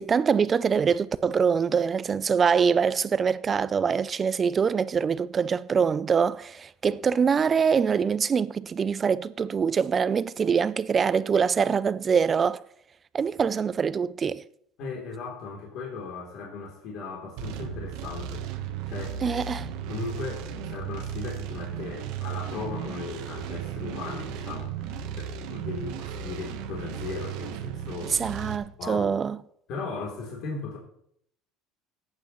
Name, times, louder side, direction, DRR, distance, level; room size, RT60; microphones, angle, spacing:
voice 1, 0.0-12.6 13.1-14.4 19.2-19.7 28.2-29.4, right 6 dB, 25° right, 0.4 m, -24 dB
voice 2, 14.8-19.2 19.9-28.2 28.8-29.2 29.7-30.8, left 4 dB, 60° left, 3.1 m, -37 dB
sound 1, 17.4-28.6, right 9 dB, 75° right, 1.1 m, -35 dB
18.5 x 8.7 x 3.1 m
cardioid pair, 135°, 0 cm